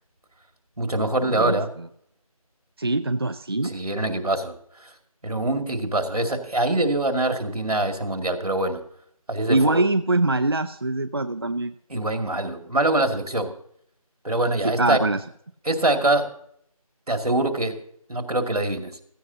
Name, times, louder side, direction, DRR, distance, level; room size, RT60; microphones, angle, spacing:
voice 1, 0.8-1.7 3.6-4.5 5.2-8.8 9.3-9.8 11.9-13.5 14.2-15.0 15.7-16.3 17.1-17.8 18.1-18.9, right 2 dB, 80° right, 5 dB, 2.3 m, -24 dB
voice 2, 1.4-1.9 2.8-3.7 9.5-11.7 14.6-15.2, right 2 dB, 40° right, 10 dB, 0.4 m, -23 dB
16.5 x 14.5 x 2.8 m, 0.65 s
figure-of-eight pair, 170°, 19 cm